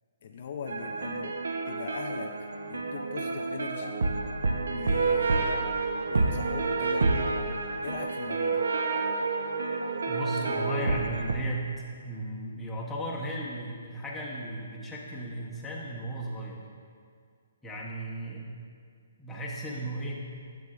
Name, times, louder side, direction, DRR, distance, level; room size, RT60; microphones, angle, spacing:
voice 1, 0.2-1.4 1.7-2.3 2.7-4.0 4.7-5.6 6.1-7.1 7.6-8.6, left 6 dB, 45° left, 4 dB, 0.4 m, -41 dB
sound 1, 0.7-11.3, right 3 dB, 85° right, 0.6 m, -29 dB
voice 2, 10.1-11.7 12.0-16.6 17.6-18.5 19.2-20.3, right 1 dB, 5° left, -5 dB, 0.7 m, -35 dB
9.1 x 6.9 x 2.4 m, 2.2 s
hypercardioid pair, 170°, 0 cm